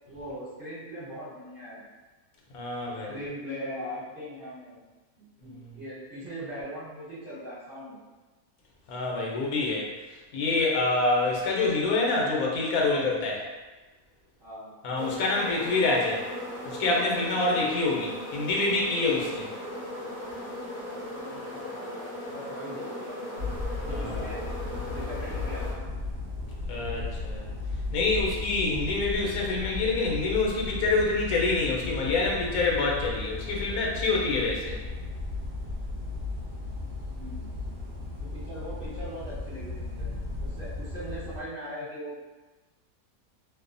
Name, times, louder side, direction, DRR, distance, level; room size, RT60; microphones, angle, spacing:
voice 1, 0.0-1.9 3.1-4.8 5.2-8.0 14.4-14.7 21.1-23.2 23.8-24.4 24.8-25.8 37.1-37.5 38.3-40.1 40.4-42.1, equal, 45° right, -11 dB, 1.0 m, -40 dB
voice 2, 2.5-3.2 5.4-5.8 8.9-9.9 10.3-13.4 14.8-16.2 16.6-19.5 23.9-24.3 26.7-27.5 27.9-34.8, left 3 dB, 80° left, -2 dB, 1.1 m, -26 dB
sound 1, 14.9-25.7, left 1 dB, 10° left, 0.6 m, -38 dB
sound 2, 23.4-41.4, left 3 dB, 60° right, 0.6 m, -35 dB
2.6 x 2.0 x 2.5 m, 1.2 s
omnidirectional pair, 1.5 m